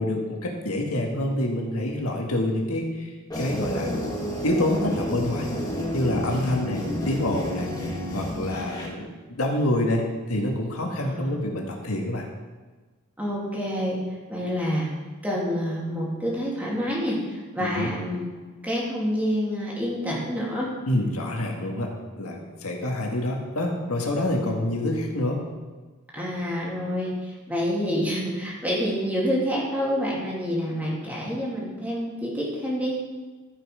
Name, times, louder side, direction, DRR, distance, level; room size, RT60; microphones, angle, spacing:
voice 1, 0.0-3.9 4.4-5.5 5.9-9.1 9.4-12.3 17.6-17.9 20.9-21.9 22.2-25.4, left 1 dB, 80° left, 0 dB, 1.7 m, -27 dB
sound 1, 3.3-8.9, equal, 15° left, 1.7 m, -30 dB
voice 2, 11.0-11.4 13.2-14.0 14.3-14.9 15.2-18.2 18.6-20.7 26.1-33.0, equal, 5° right, -5 dB, 2.4 m, -27 dB
13.5 x 5.6 x 5.0 m, 1.3 s
head